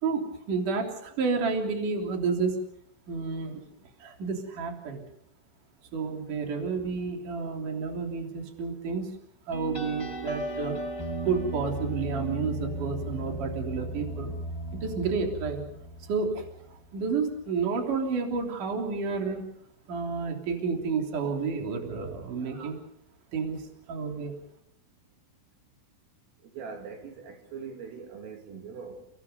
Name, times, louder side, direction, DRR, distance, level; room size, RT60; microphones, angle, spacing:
voice 1, 0.0-2.6 3.1-3.6 4.0-5.1 5.9-9.2 9.5-10.8 11.2-14.3 14.8-15.6 16.0-19.5 19.9-22.8 23.3-24.3, right 5 dB, 45° right, 2 dB, 4.3 m, -30 dB
sound 1, 9.5-16.7, right 1 dB, 5° left, 6.0 m, -36 dB
voice 2, 26.4-29.1, right 5 dB, 85° right, 3 dB, 5.3 m, -42 dB
30.0 x 19.5 x 5.5 m, 0.72 s
omnidirectional pair, 5.7 m